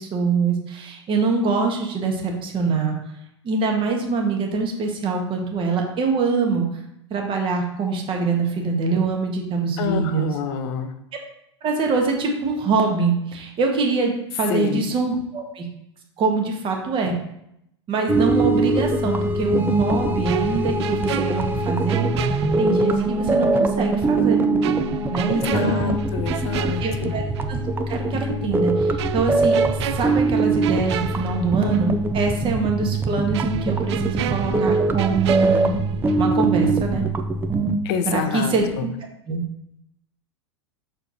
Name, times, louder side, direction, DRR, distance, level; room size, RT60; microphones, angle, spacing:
voice 1, 0.0-3.0 3.4-6.7 7.1-10.3 11.1-11.2 11.6-15.7 16.2-17.1 17.9-22.1 22.6-24.4 25.1-25.9 26.8-27.2 27.5-27.6 27.9-29.6 29.9-35.7 36.2-37.1 38.0-38.9 39.3-39.4, right 4 dB, 35° right, 2 dB, 1.6 m, -24 dB
voice 2, 9.8-10.9 14.5-14.8 25.3-27.2 37.8-38.8, left 8 dB, 60° left, 9 dB, 0.8 m, -27 dB
sound 1, 18.1-37.8, right 3 dB, 15° right, 0.6 m, -22 dB
sound 2, 20.2-23.2 23.5-23.7 24.6-27.6 27.9-28.1 29.0-32.0 32.3-32.4 33.3-36.4 36.6-36.9, right 12 dB, 65° right, 0.4 m, -32 dB
6.4 x 4.4 x 4.2 m, 0.78 s
hypercardioid pair, 90°, 15 cm